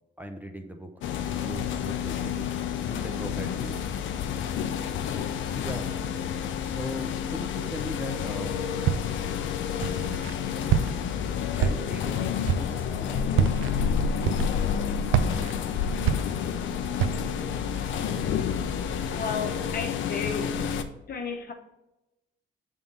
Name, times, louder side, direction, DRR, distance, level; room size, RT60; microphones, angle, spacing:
voice 1, 0.2-0.9 1.4-3.8 5.5-6.1 6.6-8.6 11.6-13.7, right 1 dB, 10° right, 0.6 m, -39 dB
sound 1, 1.0-20.8, left 7 dB, 75° left, 0.6 m, -29 dB
Walk footsteps, 8.8-9.3 9.8-10.3 10.7-11.2 11.6-12.1 12.4-12.8 13.3-13.7 14.2-14.7 15.1-16.6 17.0-17.4, right 8 dB, 85° right, 0.4 m, -26 dB
voice 2, 19.1-20.6 21.1-21.5, left 5 dB, 50° left, 1.0 m, -33 dB
7.0 x 3.6 x 3.9 m
cardioid pair, 90°, 20 cm